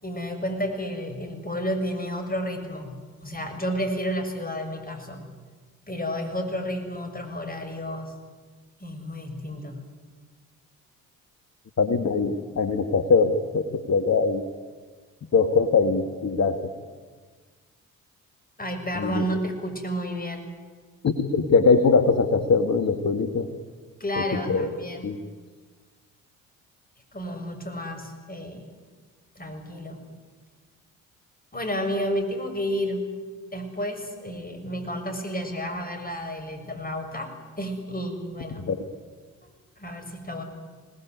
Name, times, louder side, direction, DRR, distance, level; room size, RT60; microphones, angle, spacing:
voice 1, 0.0-5.3 5.9-8.1 8.8-9.8 18.6-20.5 24.0-25.1 27.1-28.7 29.4-30.0 31.5-33.1 33.5-38.6 39.4-40.4, equal, 20° left, 6 dB, 6.9 m, -31 dB
voice 2, 11.8-14.4 15.3-16.6 19.0-19.2 21.0-23.5 24.5-25.2 38.7-38.8, left 4 dB, 40° left, 8 dB, 2.1 m, -22 dB
26.0 x 19.5 x 9.6 m, 1.4 s
figure-of-eight pair, 45°, 42 cm